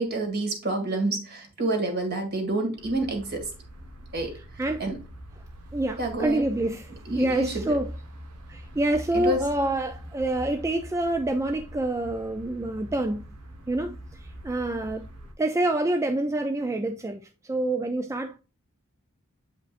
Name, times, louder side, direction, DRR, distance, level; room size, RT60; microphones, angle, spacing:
voice 1, 0.0-3.5 4.1-4.4 4.8-5.0 6.0-6.5 7.1-7.8 9.1-9.4, right 2 dB, 50° right, 1.9 m, -28 dB
sound 1, 2.8-15.3, equal, 90° right, 1.2 m, -43 dB
voice 2, 4.3-4.9 5.7-6.9 7.1-7.9 8.5-13.2 13.7-15.1 15.4-18.4, right 2 dB, 15° right, 0.3 m, -27 dB
8.1 x 5.1 x 2.5 m
head